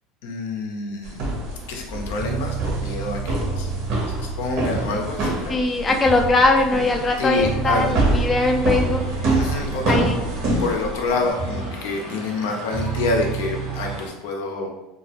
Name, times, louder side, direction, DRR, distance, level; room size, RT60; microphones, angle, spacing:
voice 1, 0.2-1.2 1.7-3.7 4.1-5.5 7.2-7.9 9.3-10.1 10.6-14.7, left 3 dB, 80° left, 1 dB, 0.5 m, -27 dB
sound 1, 1.0-11.3, right 2 dB, 60° right, 0.8 m, -26 dB
sound 2, 2.2-5.2 6.1-6.5 7.4-10.6 11.4-11.8 12.7-14.0, right 5 dB, 35° right, 0.6 m, -30 dB
sound 3, 4.8-14.1, right 2 dB, 85° right, 1.0 m, -38 dB
voice 2, 5.5-9.0 9.9-10.2, left 2 dB, 20° left, 2 dB, 0.3 m, -20 dB
2.3 x 2.0 x 2.9 m, 0.96 s
supercardioid pair, 105°, 0 cm